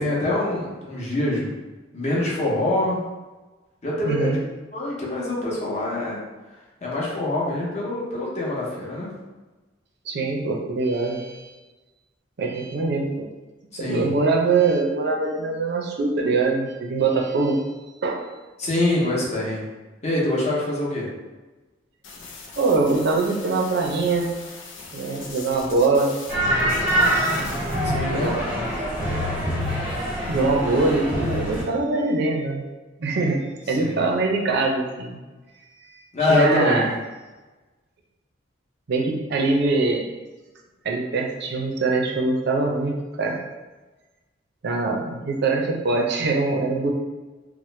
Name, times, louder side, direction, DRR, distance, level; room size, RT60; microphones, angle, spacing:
voice 1, 0.0-1.5 1.9-3.0 3.8-4.4 4.7-6.2 6.8-9.1 13.7-14.1 18.6-19.7 20.0-21.1 27.8-28.3 33.7-34.0 36.1-36.9, left 1 dB, 35° left, -5 dB, 0.8 m, -24 dB
voice 2, 4.0-4.4 10.1-11.5 12.4-13.3 13.8-17.6 18.0-18.3 22.6-24.3 24.9-26.1 27.7-28.8 30.3-32.6 33.0-35.2 35.9-36.0 36.3-36.9 38.9-40.1 40.8-43.4 44.6-46.9, right 3 dB, 60° right, 1 dB, 0.5 m, -23 dB
sound 1, 22.0-26.3 26.6-27.8, left 4 dB, 75° left, 0.6 m, -40 dB
sound 2, 26.3-31.6, equal, 10° right, 0.7 m, -24 dB
2.9 x 2.1 x 3.1 m, 1.2 s
head